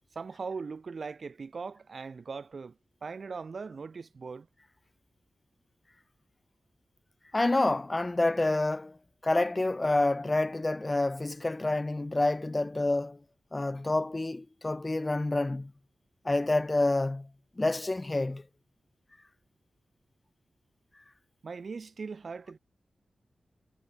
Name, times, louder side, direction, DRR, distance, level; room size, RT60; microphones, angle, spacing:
voice 1, 0.1-2.8 3.0-4.5 21.4-22.6, right 4 dB, 60° right, 2.7 m, -39 dB
voice 2, 7.3-9.0 9.2-13.2 13.5-15.7 16.2-17.3 17.6-18.4, left 2 dB, 25° left, 1.3 m, -28 dB
cardioid pair, 70°, 0 cm